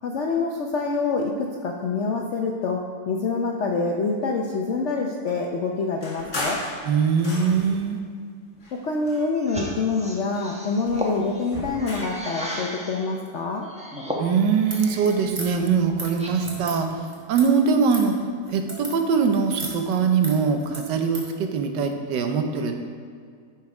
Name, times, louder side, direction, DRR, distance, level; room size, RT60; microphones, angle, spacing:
voice 1, 0.0-2.8 3.1-6.6 8.8-13.7, left 4 dB, 65° left, 0 dB, 0.7 m, -26 dB
sound 1, 6.0-7.9 8.6-9.7 10.0-12.3, left 1 dB, 40° left, 1.9 m, -35 dB
voice 2, 6.9-8.1 14.2-16.9 17.3-18.1 18.5-22.7, right 5 dB, 80° right, 5 dB, 1.4 m, -22 dB
sound 2, 9.4-13.1 13.6-15.3 15.7-16.7, equal, 5° right, 0.5 m, -35 dB
sound 3, 14.7-21.3, right 1 dB, 25° right, 1.4 m, -38 dB
10.5 x 4.6 x 4.7 m, 2.1 s
omnidirectional pair, 1.9 m